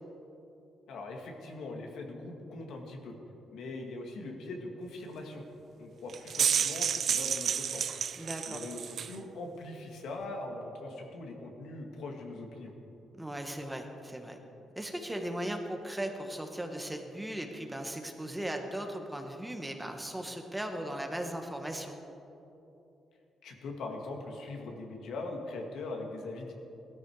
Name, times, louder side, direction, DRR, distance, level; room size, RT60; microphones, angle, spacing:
voice 1, 0.9-3.1 3.5-5.4 5.8-8.0 8.5-12.7 23.4-26.5, left 2 dB, 75° left, 2 dB, 2.1 m, -41 dB
sound 1, 6.1-9.2, right 8 dB, 55° right, 0.5 m, -30 dB
voice 2, 8.2-8.6 13.2-14.4 14.7-22.0, right 1 dB, 5° right, 4 dB, 1.2 m, -37 dB
17.5 x 13.0 x 4.8 m, 3.0 s
cardioid pair, 125°, 0 cm